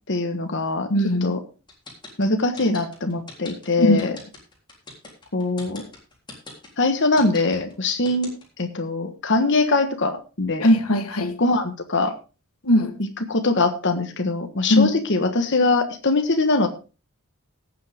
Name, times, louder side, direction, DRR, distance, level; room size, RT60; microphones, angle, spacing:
voice 1, 0.1-0.9 1.2-1.4 2.2-4.1 5.3-5.8 6.8-8.3 8.6-10.7 11.4-12.1 13.3-16.7, left 3 dB, 55° left, 1.5 m, -22 dB
voice 2, 0.9-1.4 3.8-4.0 10.6-11.4 12.6-12.9 14.7-14.9, left 1 dB, 90° left, 1.6 m, -19 dB
sound 1, 1.7-8.6, left 3 dB, 20° left, 3.7 m, -40 dB
17.5 x 7.7 x 3.6 m
head